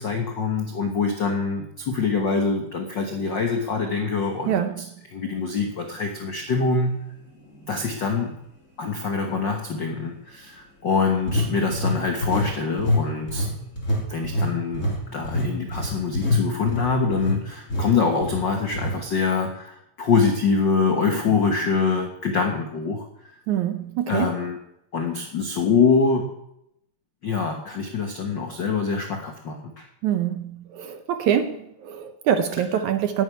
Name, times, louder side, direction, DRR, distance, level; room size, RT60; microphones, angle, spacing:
voice 1, 0.0-4.7 5.1-7.0 7.7-8.3 8.8-13.5 14.1-23.1 24.1-24.6 24.9-26.3 27.2-29.9, left 4 dB, 75° left, 3 dB, 1.0 m, -24 dB
voice 2, 4.5-4.9 23.5-24.4 30.0-33.2, right 9 dB, 70° right, 8 dB, 2.0 m, -25 dB
sound 1, 6.8-6.9 7.6-7.7 11.3-12.5 12.8-13.0 13.3-17.4 17.7-17.9 18.2-18.4 18.7-19.0, left 1 dB, 20° left, 3.2 m, -25 dB
9.5 x 9.1 x 9.5 m, 0.79 s
omnidirectional pair, 4.1 m